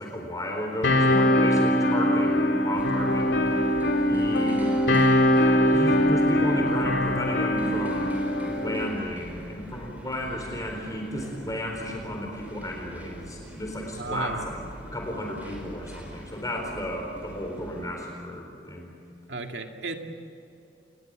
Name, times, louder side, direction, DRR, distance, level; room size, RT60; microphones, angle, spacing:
voice 1, 0.0-3.5 4.1-4.6 5.5-8.2 8.5-14.6 14.9-18.9, equal, 20° left, 1 dB, 4.2 m, -33 dB
sound 1, 0.8-8.9, left 1 dB, 80° left, 3.2 m, -22 dB
sound 2, 2.8-17.9, equal, 10° right, 5.1 m, -43 dB
voice 2, 13.9-14.5 19.3-20.0, right 3 dB, 70° right, 4 dB, 2.4 m, -33 dB
29.0 x 21.0 x 7.7 m, 2.7 s
head